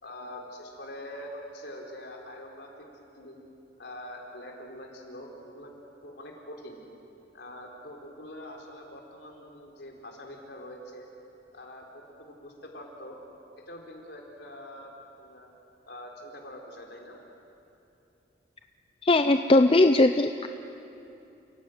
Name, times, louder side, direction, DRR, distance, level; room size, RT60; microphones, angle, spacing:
voice 1, 0.0-2.9 3.1-3.4 3.8-6.8 7.3-11.1 11.5-13.2 13.6-15.5 15.9-17.2, left 1 dB, 60° left, 1 dB, 4.0 m, -44 dB
voice 2, 19.0-20.5, left 2 dB, 30° left, 8 dB, 0.5 m, -20 dB
29.5 x 16.5 x 9.3 m, 2.8 s
head